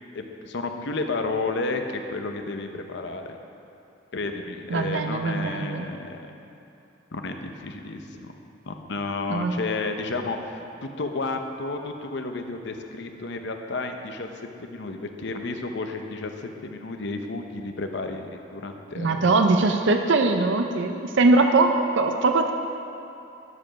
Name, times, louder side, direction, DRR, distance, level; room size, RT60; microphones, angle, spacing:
voice 1, 0.1-3.4 4.1-6.3 7.1-8.3 8.7-10.6 11.0-19.3, left 3 dB, 60° left, 5 dB, 0.8 m, -32 dB
voice 2, 4.7-5.9 9.3-9.6 19.0-22.5, right 3 dB, 65° right, 5 dB, 0.5 m, -21 dB
12.5 x 5.2 x 5.7 m, 2.7 s
head